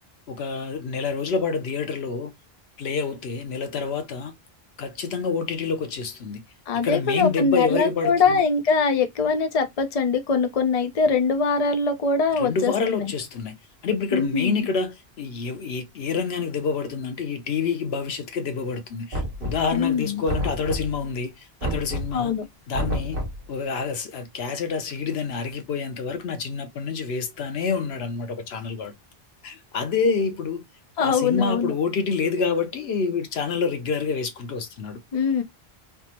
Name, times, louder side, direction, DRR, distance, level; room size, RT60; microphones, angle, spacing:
voice 1, 0.3-2.3 2.8-4.3 4.8-6.4 6.8-8.4 12.4-13.5 13.8-22.3 22.7-23.2 23.5-28.9 29.4-30.6 31.0-35.0, left 5 dB, 85° left, 1.0 m, -27 dB
voice 2, 6.7-12.7 14.1-14.7 19.7-20.2 22.1-22.4 31.0-31.7 35.1-35.4, left 5 dB, 45° left, 0.6 m, -22 dB
Knock, 19.1-19.8 20.3-21.1 21.6-22.2 22.7-23.5, equal, 60° right, 1.2 m, -29 dB
3.3 x 2.0 x 2.8 m
omnidirectional pair, 1.0 m